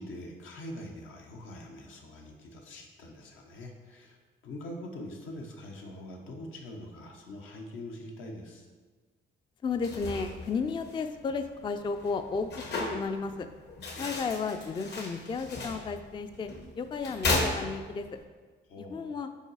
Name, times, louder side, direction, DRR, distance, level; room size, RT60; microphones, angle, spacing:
voice 1, 0.0-4.2 4.4-8.7 13.9-14.3 18.7-19.0, left 1 dB, 80° left, 2 dB, 1.0 m, -43 dB
voice 2, 9.6-13.5 14.0-16.5 16.8-18.1 18.8-19.3, left 4 dB, 25° left, 8 dB, 0.3 m, -33 dB
sound 1, 9.7-18.2, left 2 dB, 60° left, 1.1 m, -36 dB
5.5 x 4.0 x 4.7 m, 1.4 s
cardioid pair, 90°, 20 cm